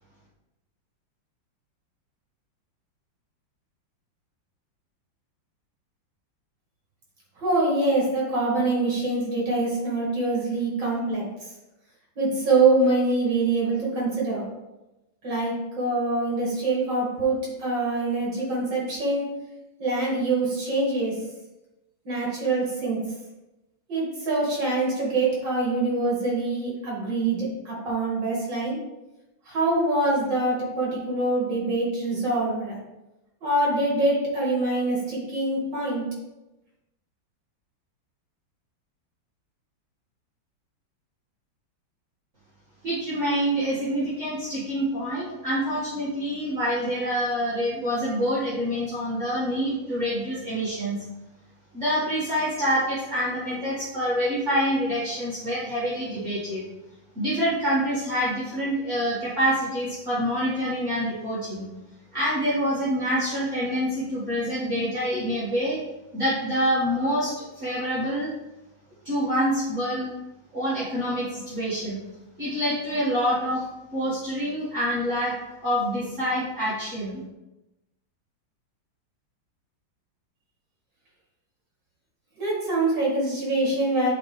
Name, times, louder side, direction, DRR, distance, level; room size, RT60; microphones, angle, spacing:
voice 1, 7.4-11.5 12.2-14.5 15.2-19.4 19.8-21.2 22.0-23.0 23.9-28.8 29.5-32.7 33.4-36.1 82.4-84.1, right 2 dB, 70° right, -4 dB, 2.9 m, -24 dB
voice 2, 42.8-51.0 51.7-56.7 57.2-61.7 62.1-65.8 66.1-68.3 69.0-70.1 70.5-72.0 72.4-73.6 73.9-75.3 75.6-77.2, equal, 40° right, -12 dB, 2.4 m, -26 dB
9.2 x 4.4 x 3.4 m, 0.99 s
omnidirectional pair, 2.1 m